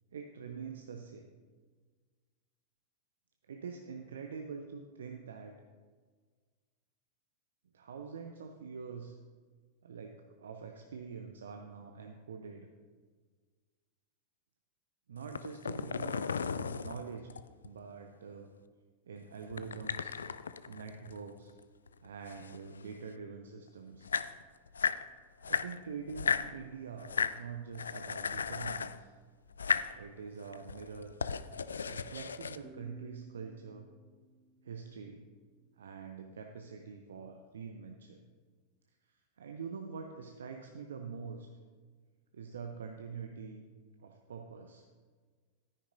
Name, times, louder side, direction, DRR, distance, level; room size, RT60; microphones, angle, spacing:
voice 1, 0.1-1.3 3.5-5.6 7.7-9.2 9.8-12.7 15.1-16.2 16.5-17.3 17.6-18.5 19.1-20.1 20.7-21.5 22.0-24.1 25.4-29.1 29.9-31.1 31.8-33.9 34.6-35.3 35.8-38.2 39.1-41.5 42.3-43.6 44.0-44.8, right 5 dB, 65° right, 4 dB, 0.6 m, -45 dB
sound 1, 15.2-17.7 19.5-21.6 21.9-23.1 23.7-23.8 23.9-25.0 25.4-26.5 27.0-27.4 27.7-29.0 29.5-29.9 30.5-32.6, left 6 dB, 70° left, 0.3 m, -35 dB
sound 2, 32.6-36.1, right 2 dB, 5° right, 1.4 m, -57 dB
13.0 x 10.0 x 2.6 m, 1.5 s
figure-of-eight pair, 90°, 0 cm